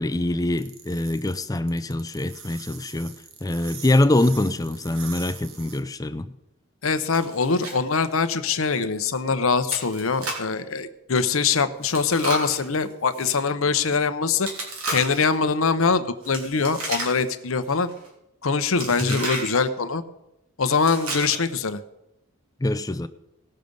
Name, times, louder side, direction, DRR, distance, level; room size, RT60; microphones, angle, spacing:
voice 1, 0.0-3.1 3.4-6.3 19.0-19.2 22.6-23.1, left 1 dB, 15° left, 12 dB, 0.5 m, -24 dB
sound 1, 0.6-5.8, right 6 dB, 75° right, 1.5 m, -42 dB
voice 2, 6.8-14.5 14.9-17.9 18.4-20.0 20.6-21.8, left 5 dB, 70° left, 11 dB, 0.8 m, -23 dB
Chewing mastication, 7.1-7.8 8.1-8.2 8.7-8.8 9.7-10.5 11.8-13.4 14.4-15.3 16.2-17.4 17.7-18.1 18.8-19.6 20.7-21.6, right 2 dB, 90° right, 3.3 m, -33 dB
18.0 x 6.6 x 5.3 m, 0.89 s
head